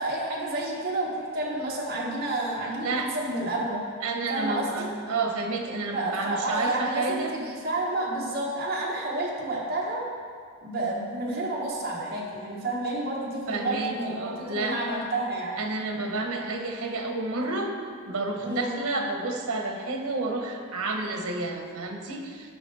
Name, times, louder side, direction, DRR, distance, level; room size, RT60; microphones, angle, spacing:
voice 1, 0.0-3.8 4.3-4.9 5.9-10.0 10.6-15.6 18.4-18.7, right 2 dB, 45° right, -4 dB, 1.3 m, -30 dB
voice 2, 4.0-7.3 13.5-14.8 15.6-17.7 18.1-22.5, right 3 dB, 85° right, 3 dB, 1.0 m, -30 dB
11.0 x 5.6 x 3.4 m, 2.1 s
head